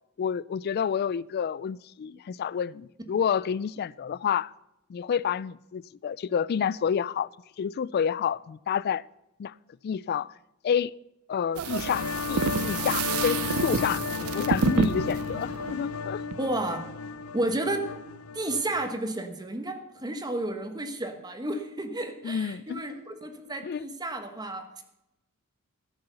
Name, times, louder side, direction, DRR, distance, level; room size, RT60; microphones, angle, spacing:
voice 1, 0.2-4.5 4.9-7.3 7.6-9.0 9.4-9.5 9.8-10.3 10.6-10.9 11.3-14.0 14.3-16.2 22.2-22.8 23.6-23.9, left 7 dB, 45° left, 0.3 m, -29 dB
sound 1, 11.6-18.9, left 5 dB, 90° left, 0.7 m, -34 dB
sound 2, 11.6-16.4, right 5 dB, 75° right, 0.5 m, -29 dB
voice 2, 16.4-16.9 17.3-17.9 18.3-24.6, right 1 dB, 20° right, 1.2 m, -32 dB
13.5 x 6.9 x 6.8 m
head